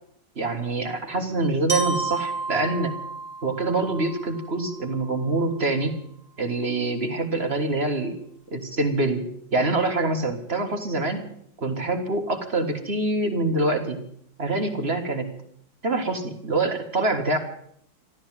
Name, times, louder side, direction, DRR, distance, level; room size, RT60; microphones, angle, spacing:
voice 1, 0.3-2.9 3.4-5.9 6.4-8.1 8.5-11.2 11.6-14.0 14.4-15.3 15.8-17.4, right 2 dB, 35° right, 5 dB, 1.9 m, -25 dB
Glockenspiel, 1.7-5.7, right 3 dB, 5° left, 2.6 m, -32 dB
13.5 x 13.0 x 7.5 m, 0.69 s
omnidirectional pair, 1.9 m